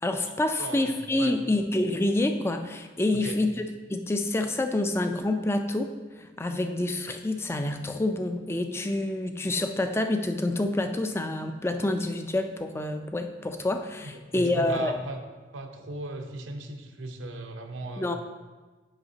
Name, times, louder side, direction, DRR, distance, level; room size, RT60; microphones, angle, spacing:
voice 1, 0.0-15.0 18.0-18.1, left 1 dB, 15° left, 7 dB, 0.3 m, -27 dB
voice 2, 0.6-1.3 3.1-3.4 14.1-15.2 15.5-18.1, right 2 dB, 80° right, 5 dB, 0.7 m, -37 dB
8.9 x 5.7 x 2.8 m, 1.3 s
head